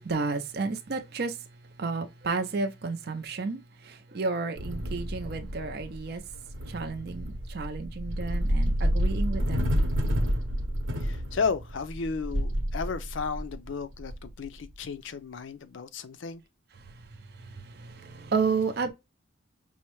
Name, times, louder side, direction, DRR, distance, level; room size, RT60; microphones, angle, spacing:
voice 1, 0.0-1.4 1.8-6.2 6.7-9.7 17.5-18.9, right 4 dB, 50° right, 0.5 m, -32 dB
sound 1, 4.6-14.8, equal, 80° right, 0.9 m, -30 dB
voice 2, 11.0-16.4, left 5 dB, 65° left, 0.4 m, -33 dB
5.5 x 2.1 x 3.0 m
head